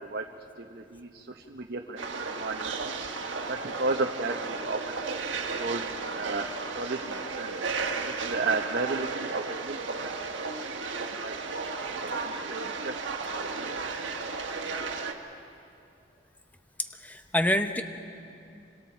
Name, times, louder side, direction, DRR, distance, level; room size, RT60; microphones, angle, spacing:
voice 1, 0.6-2.0 2.3-3.0 3.5-4.8 5.3-5.8 6.1-7.6 8.1-9.8 10.0-10.7 10.9-11.3 11.8-13.1, right 3 dB, 55° right, 2 dB, 1.0 m, -34 dB
sound 1, 2.0-15.1, right 4 dB, 80° right, 1.5 m, -34 dB
voice 2, 16.8-17.8, left 1 dB, 10° left, 7 dB, 0.9 m, -27 dB
28.5 x 25.5 x 4.5 m, 2.6 s
head